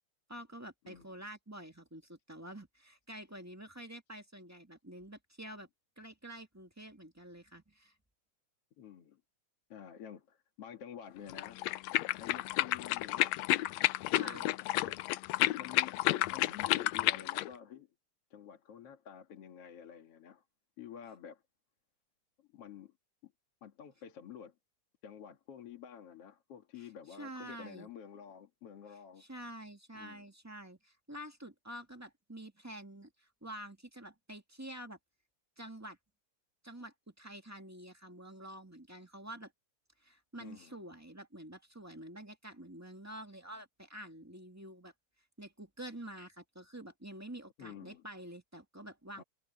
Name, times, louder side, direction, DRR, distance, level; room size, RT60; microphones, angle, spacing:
voice 1, 0.3-5.7 6.0-7.9 14.1-14.5 26.8-26.9 27.2-27.9 29.2-35.0 35.6-36.0 36.6-39.5 40.0-44.9 45.4-49.2, right 1 dB, 5° right, 1.4 m, -48 dB
voice 2, 8.8-9.2 9.7-11.6 12.2-13.4 14.2-14.5 14.8-15.0 15.6-16.0 16.3-17.9 18.3-20.4 20.8-21.4 22.4-22.9 23.2-23.3 23.6-24.5 25.0-29.2 29.9-30.3 40.4-40.8 47.6-48.0 49.2-49.3, left 9 dB, 55° left, 2.7 m, -50 dB
sound 1, 11.3-17.5, left 17 dB, 75° left, 1.7 m, -31 dB
omnidirectional pair, 3.4 m